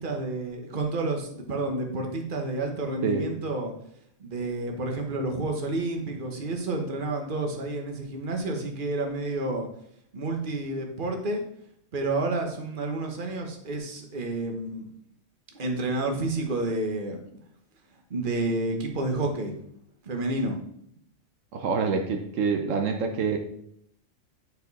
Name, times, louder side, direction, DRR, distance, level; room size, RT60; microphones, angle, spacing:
voice 1, 0.0-3.7 4.2-9.7 10.1-11.4 11.9-14.9 15.6-17.2 18.1-19.6 20.0-20.6, right 2 dB, 40° right, 3 dB, 1.3 m, -30 dB
voice 2, 21.5-23.4, right 5 dB, 80° right, 4 dB, 1.1 m, -26 dB
8.8 x 4.8 x 4.1 m, 0.71 s
omnidirectional pair, 1.3 m